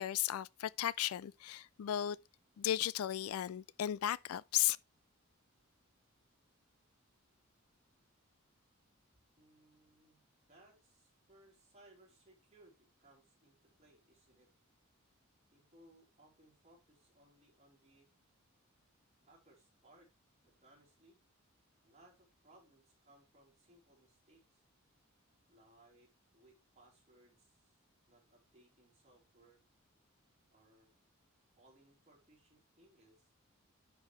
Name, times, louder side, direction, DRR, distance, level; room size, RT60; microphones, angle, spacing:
voice 1, 0.0-2.2 2.6-4.8, left 12 dB, 85° left, 0.3 m, -35 dB
voice 2, 9.4-10.2 10.5-14.5 15.5-18.1 19.2-20.1 20.4-21.2 21.8-24.6 25.5-27.8 28.1-29.6 30.5-30.9 31.6-33.3, right 1 dB, 30° right, 3.7 m, -66 dB
10.5 x 4.7 x 3.2 m
head